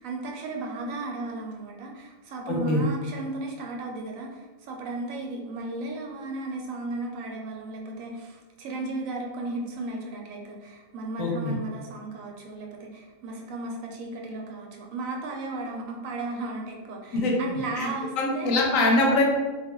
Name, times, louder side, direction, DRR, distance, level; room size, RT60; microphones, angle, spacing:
voice 1, 0.0-18.5, right 2 dB, 85° right, 0 dB, 1.0 m, -35 dB
voice 2, 2.5-2.8 11.2-11.5 17.1-17.3 17.8-17.9 18.2-19.2, left 2 dB, 85° left, 0 dB, 1.0 m, -23 dB
2.4 x 2.3 x 2.9 m, 1.3 s
omnidirectional pair, 1.4 m